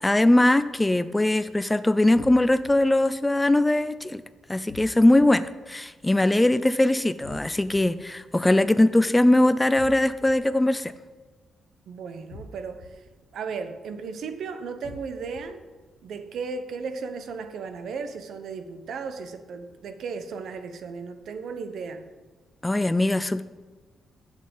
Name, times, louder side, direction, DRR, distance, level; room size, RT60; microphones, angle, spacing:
voice 1, 0.0-4.2 4.5-10.9 22.6-23.4, left 1 dB, 10° left, 13 dB, 0.4 m, -21 dB
sound 1, 2.2-2.7 4.7-5.3 7.2-7.8 9.8-10.3 12.3-12.9 14.8-15.4, left 2 dB, 85° left, 1.0 m, -43 dB
voice 2, 11.9-13.0 13.3-15.6 16.0-22.0, right 5 dB, 70° right, 9 dB, 1.0 m, -35 dB
7.4 x 7.4 x 7.7 m, 1.3 s
cardioid pair, 110°, 0 cm